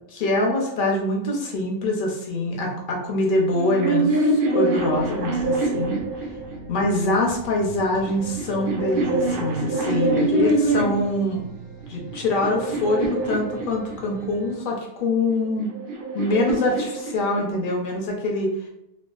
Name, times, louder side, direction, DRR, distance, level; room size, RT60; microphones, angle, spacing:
voice 1, 0.1-6.0 6.7-11.4 11.9-15.7 16.1-18.5, left 2 dB, 55° left, -1 dB, 0.6 m, -24 dB
sound 1, 3.5-6.9 7.8-11.2 11.8-14.3 15.3-17.7, right 2 dB, 60° right, 0.5 m, -25 dB
sound 2, 4.7-14.5, right 3 dB, 45° right, 0.8 m, -43 dB
3.5 x 2.3 x 2.3 m, 0.84 s
omnidirectional pair, 1.5 m